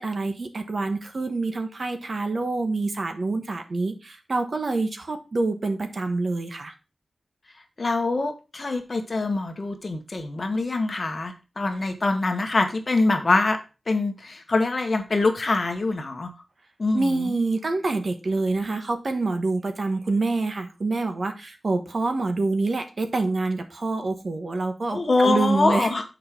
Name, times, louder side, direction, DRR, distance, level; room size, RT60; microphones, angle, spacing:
voice 1, 0.0-6.7 16.9-25.9, right 3 dB, 55° right, 6 dB, 1.3 m, -26 dB
voice 2, 7.8-13.6 13.9-16.3 16.8-17.3 24.9-26.0, left 3 dB, 40° left, 6 dB, 1.4 m, -24 dB
6.7 x 5.1 x 6.0 m, 0.31 s
wide cardioid pair, 115°, 0 cm